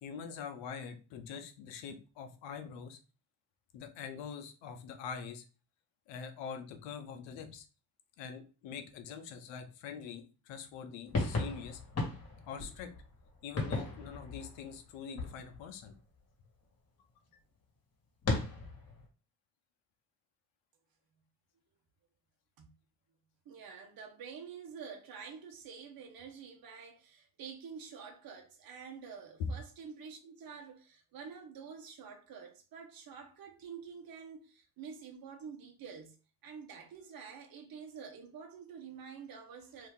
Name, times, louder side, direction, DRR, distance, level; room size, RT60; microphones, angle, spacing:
voice 1, 0.0-3.0 3.7-5.4 6.1-7.7 8.2-11.8 12.5-12.9 13.4-15.9, left 6 dB, 80° left, 0.8 m, -44 dB
sound 1, 11.1-15.9 18.2-19.1, left 3 dB, 35° left, 1.5 m, -36 dB
voice 2, 23.4-36.2 36.4-39.9, right 6 dB, 50° right, 1.0 m, -48 dB
2.9 x 2.7 x 3.6 m
cardioid pair, 95°, 44 cm